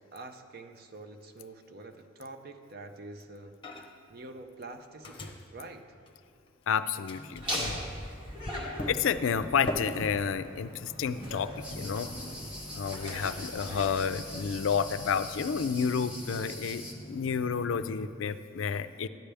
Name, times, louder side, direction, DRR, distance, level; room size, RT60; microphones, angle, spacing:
voice 1, 0.0-3.6 4.1-5.9 13.1-13.8, right 2 dB, 50° right, 7 dB, 0.6 m, -46 dB
Microwave oven, 3.6-4.1 4.4-6.7 7.1-18.1, left 1 dB, 25° left, 0.8 m, -43 dB
voice 2, 6.7-7.7 8.9-12.1 12.7-19.1, left 6 dB, 70° left, 12 dB, 0.4 m, -30 dB
Laughter, 7.3-15.0, equal, 25° right, 2.0 m, -40 dB
sound 1, 11.6-16.9, left 1 dB, 5° right, 0.9 m, -43 dB
13.5 x 10.0 x 3.4 m, 2.2 s
head